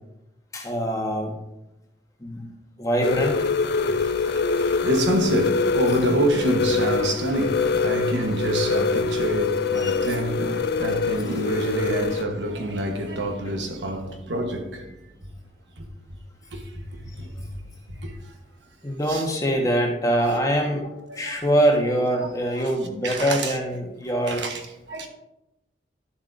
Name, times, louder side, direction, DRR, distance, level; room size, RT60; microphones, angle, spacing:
voice 1, 0.5-1.3 2.2-2.5 2.8-3.5 9.7-10.2 11.3-11.5 18.8-20.9 21.1-24.5, right 1 dB, 20° left, 1.3 m, -24 dB
sound 1, 3.0-12.2, left 4 dB, 60° left, 0.3 m, -24 dB
voice 2, 3.7-14.9 16.5-16.6 17.0-17.5 18.0-18.1 19.1-19.2 21.1-21.4 22.6-22.7 23.0-23.6 24.3-24.6 24.9-25.1, right 1 dB, 80° right, 1.2 m, -27 dB
11.5 x 7.2 x 2.6 m
head